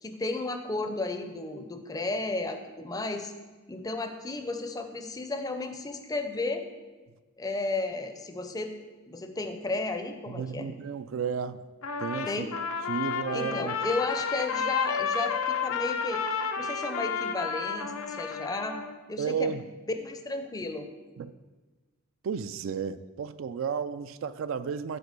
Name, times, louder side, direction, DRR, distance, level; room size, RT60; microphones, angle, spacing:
voice 1, 0.0-3.3 3.7-6.7 7.4-8.8 9.1-10.7 12.3-12.6 13.3-16.2 16.6-18.8 19.1-19.6 19.9-20.9, left 2 dB, 15° left, 7 dB, 0.5 m, -33 dB
voice 2, 10.3-11.7 12.0-12.5 12.9-13.8 19.2-19.6 21.2-21.3 22.2-25.0, right 6 dB, 70° right, 14 dB, 0.3 m, -32 dB
Trumpet, 11.8-18.9, left 6 dB, 90° left, 0.6 m, -31 dB
7.9 x 4.5 x 6.6 m, 1.3 s
head